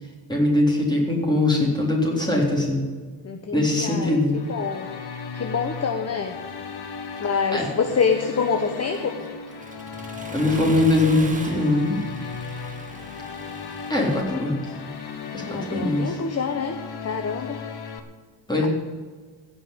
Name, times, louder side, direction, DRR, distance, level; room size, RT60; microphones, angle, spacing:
voice 1, 0.3-2.9 3.5-4.4 7.5-7.7 10.3-12.0 13.9-14.7 15.3-16.2 18.5-18.7, left 2 dB, 10° left, -2 dB, 3.7 m, -21 dB
voice 2, 3.2-4.2 4.5-4.9 5.3-6.4 7.2-9.2 15.5-16.8 17.0-17.6, left 5 dB, 30° left, 6 dB, 1.0 m, -26 dB
sound 1, 4.3-18.0, left 5 dB, 55° left, 1.5 m, -36 dB
Accelerating revving vroom, 8.9-14.2, right 2 dB, 15° right, 1.5 m, -39 dB
16.0 x 5.7 x 9.7 m, 1.5 s
wide cardioid pair, 150°, 47 cm